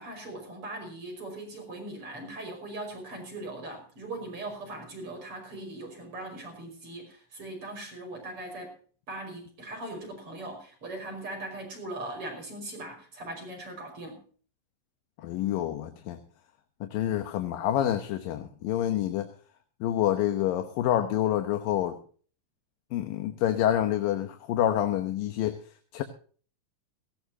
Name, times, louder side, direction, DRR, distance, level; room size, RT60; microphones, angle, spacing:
voice 1, 0.0-8.7 9.1-14.2, right 2 dB, 40° right, 3 dB, 6.1 m, -40 dB
voice 2, 15.2-16.2 16.8-19.3 19.8-22.0 22.9-25.6 25.9-26.0, left 11 dB, 85° left, 7 dB, 2.8 m, -27 dB
18.0 x 17.0 x 2.8 m, 0.43 s
omnidirectional pair, 3.9 m